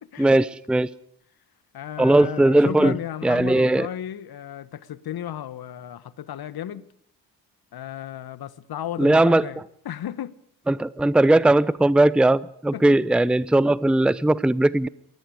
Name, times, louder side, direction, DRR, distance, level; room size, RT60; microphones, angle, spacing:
voice 1, 0.2-0.9 2.0-2.9 3.2-3.9 9.0-9.5 10.7-14.9, right 2 dB, ahead, 0.8 m, -18 dB
voice 2, 1.7-6.9 7.7-10.4 12.7-13.0, left 10 dB, 45° left, 1.6 m, -34 dB
27.5 x 21.5 x 5.1 m
hypercardioid pair, 50°, 50 cm